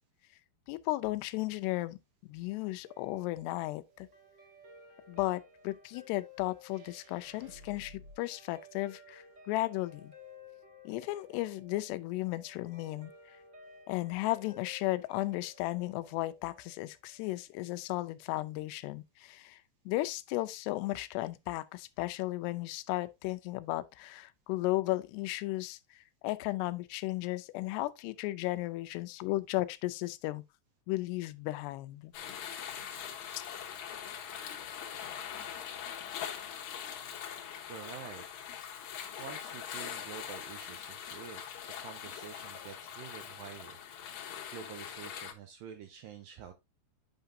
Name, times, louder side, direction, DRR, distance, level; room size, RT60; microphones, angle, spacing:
voice 1, 0.7-4.1 5.1-10.1 10.9-13.4 13.9-19.6 19.9-30.4 30.9-32.1 33.3-33.4, left 18 dB, 90° left, 2.7 m, -35 dB
Guitar, 2.8-17.4, left 1 dB, 40° right, 1.0 m, -56 dB
sound 1, 6.6-8.2, left 1 dB, 65° right, 3.6 m, -54 dB
sound 2, 32.1-45.3, left 9 dB, 70° left, 1.9 m, -42 dB
voice 2, 37.7-38.2 39.2-41.4 41.8-46.5, right 7 dB, 80° right, 2.0 m, -48 dB
8.9 x 5.7 x 2.6 m
omnidirectional pair, 4.7 m